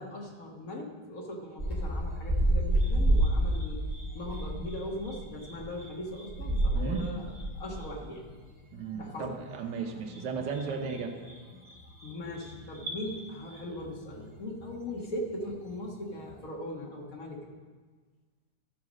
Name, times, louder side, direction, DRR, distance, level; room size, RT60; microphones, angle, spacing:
voice 1, 0.0-3.8 4.1-7.2 7.6-8.3 9.0-9.4 12.0-17.5, left 1 dB, 55° left, -1 dB, 1.9 m, -39 dB
sound 1, 1.6-15.9 16.1-16.3, right 1 dB, 5° right, 1.9 m, -31 dB
voice 2, 6.7-7.1 8.7-11.1, right 5 dB, 90° right, 3 dB, 1.6 m, -35 dB
13.5 x 4.8 x 6.3 m, 1.4 s
omnidirectional pair, 1.8 m